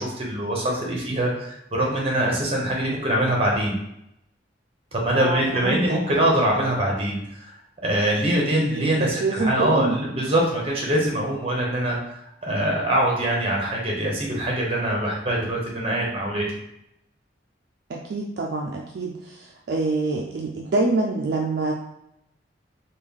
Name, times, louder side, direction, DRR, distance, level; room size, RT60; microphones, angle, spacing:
voice 1, 0.0-3.8 4.9-7.5 7.8-12.1 12.4-16.4, right 1 dB, 30° right, -2 dB, 0.9 m, -23 dB
voice 2, 5.1-6.0 8.7-9.9 17.9-21.7, right 3 dB, 60° right, -1 dB, 0.4 m, -26 dB
3.2 x 2.3 x 3.6 m, 0.80 s
head